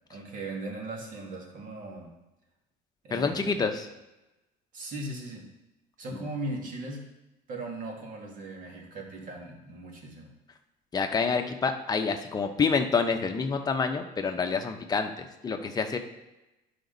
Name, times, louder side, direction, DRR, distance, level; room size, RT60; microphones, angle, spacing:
voice 1, 0.1-2.1 3.0-3.6 4.7-5.4 6.0-7.1 7.5-10.3, right 2 dB, 50° right, 0 dB, 2.2 m, -38 dB
voice 2, 3.1-3.9 10.9-16.0, left 5 dB, 20° left, 4 dB, 0.8 m, -27 dB
11.5 x 5.1 x 4.0 m, 0.99 s
cardioid pair, 120°, 17 cm